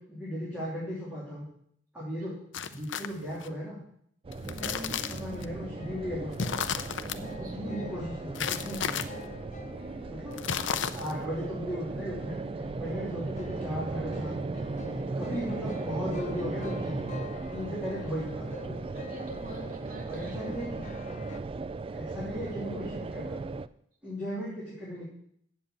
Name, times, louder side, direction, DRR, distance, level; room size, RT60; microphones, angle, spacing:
voice 1, 0.0-1.5 1.9-2.3 2.7-3.8 4.3-6.7 7.1-9.0 10.1-10.4 10.9-12.4 12.8-14.4 15.2-17.0 17.5-19.0 20.1-20.9 21.9-23.5 24.0-25.0, equal, 5° right, -8 dB, 3.4 m, -37 dB
sound 1, 2.5-3.5 4.3-5.4 6.3-7.2 8.3-9.1 10.3-11.2, left 7 dB, 70° left, 0.6 m, -33 dB
sound 2, 4.2-23.7, right 3 dB, 30° right, 0.3 m, -37 dB
sound 3, 4.6-21.4, left 2 dB, 40° left, 0.8 m, -46 dB
voice 2, 9.7-10.1 18.9-20.4, right 1 dB, 45° right, -1 dB, 2.8 m, -46 dB
7.9 x 7.5 x 8.6 m, 0.69 s
head